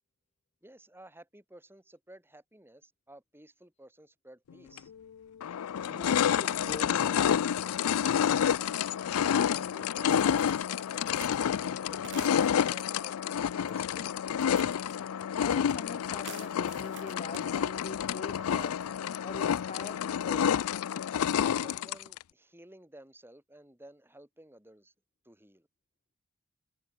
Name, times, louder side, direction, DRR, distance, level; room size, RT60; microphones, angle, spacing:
voice 1, 0.6-4.9 9.2-14.2 21.4-24.9 25.2-25.7, right 1 dB, 10° right, 5.9 m, -54 dB
sound 1, 4.8-4.9 5.4-22.2, left 8 dB, 75° left, 0.4 m, -29 dB
voice 2, 5.8-7.9 15.2-18.9 19.2-20.6, left 3 dB, 30° left, 0.6 m, -44 dB
sound 2, 10.1-11.4 12.0-12.8 13.7-14.0 14.3-15.8 16.0-17.5 18.3-18.6, right 6 dB, 55° right, 4.5 m, -47 dB
head